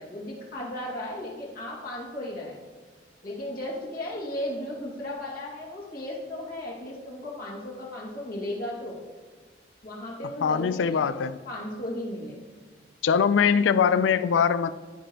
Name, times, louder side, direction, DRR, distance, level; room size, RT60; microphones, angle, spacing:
voice 1, 0.0-2.6 3.2-9.0 9.8-11.0 11.4-12.4 13.2-13.6, left 1 dB, 50° left, -5 dB, 2.1 m, -35 dB
voice 2, 10.4-11.4 13.0-14.7, left 6 dB, 85° left, 15 dB, 0.3 m, -22 dB
15.0 x 5.1 x 2.9 m, 1.4 s
head